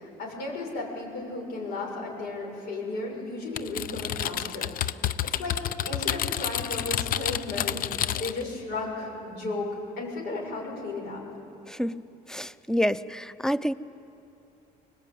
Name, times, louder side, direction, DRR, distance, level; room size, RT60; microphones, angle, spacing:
voice 1, 0.0-4.7 5.3-5.6 5.8-11.2, left 2 dB, 80° left, -1 dB, 7.2 m, -34 dB
Typing, 3.6-8.5, left 11 dB, 55° left, 0.7 m, -29 dB
voice 2, 11.7-12.0 12.3-13.7, equal, 5° left, 16 dB, 0.6 m, -28 dB
24.0 x 19.0 x 9.3 m, 2.9 s
cardioid pair, 110°, 17 cm